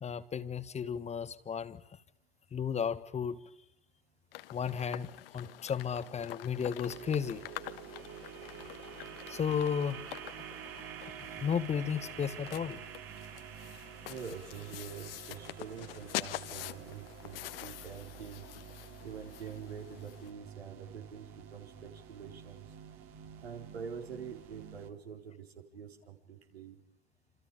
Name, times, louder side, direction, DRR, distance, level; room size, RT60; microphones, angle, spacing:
voice 1, 0.0-1.8 2.5-3.4 4.5-7.4 9.3-10.0 11.4-12.8, left 7 dB, 20° left, 12 dB, 1.5 m, -34 dB
sound 1, 4.3-20.3, left 15 dB, 65° left, 1.4 m, -46 dB
sound 2, 6.8-24.9, right 8 dB, 45° right, 3.0 m, -48 dB
voice 2, 14.1-18.4 19.0-22.7 23.4-25.5 25.7-26.8, right 7 dB, 80° right, 3 dB, 4.6 m, -46 dB
28.0 x 27.5 x 5.2 m, 0.81 s
hypercardioid pair, 95°, 31 cm